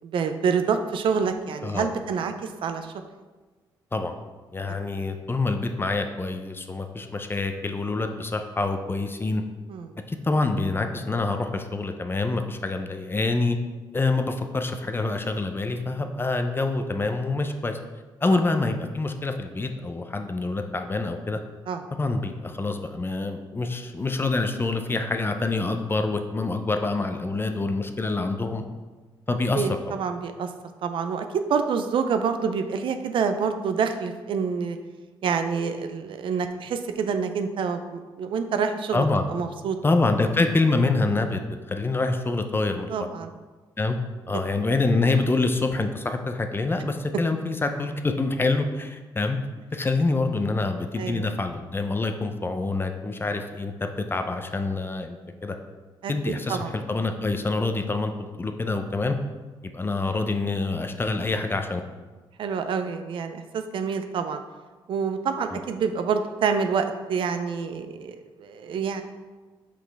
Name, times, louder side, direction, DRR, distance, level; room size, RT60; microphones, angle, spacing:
voice 1, 0.0-2.9 4.9-5.0 9.7-9.9 18.3-18.4 21.7-21.8 29.5-30.5 30.8-34.8 35.2-39.8 42.9-43.3 51.0-51.3 56.0-56.7 62.4-64.4 64.9-69.0, right 6 dB, 70° right, 7 dB, 0.5 m, -27 dB
voice 2, 1.6-1.9 3.9-4.2 4.5-9.4 10.1-13.6 13.9-17.8 18.2-21.4 22.0-28.6 29.3-29.7 38.9-39.3 39.8-41.4 41.7-42.9 43.8-44.0 44.3-49.4 49.7-53.7 54.1-55.2 55.4-55.5 56.1-58.1 58.4-59.2 59.6-61.8 65.5-65.6, left 3 dB, 25° left, 6 dB, 0.6 m, -26 dB
5.8 x 4.9 x 3.4 m, 1.3 s
cardioid pair, 80°, 9 cm